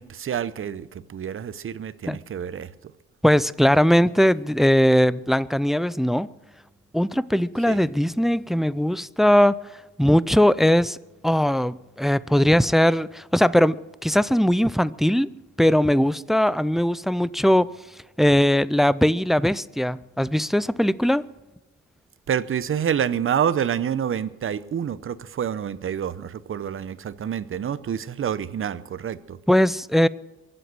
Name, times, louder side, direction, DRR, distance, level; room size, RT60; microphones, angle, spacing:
voice 1, 0.0-2.7 7.7-7.8 22.3-29.4, right 8 dB, 45° right, 0.8 m, -28 dB
voice 2, 3.2-6.3 6.9-9.6 10.0-11.0 11.2-15.3 15.6-17.7 18.2-21.3 29.5-30.1, equal, ahead, 0.4 m, -20 dB
23.0 x 7.9 x 6.2 m
cardioid pair, 90°, 30 cm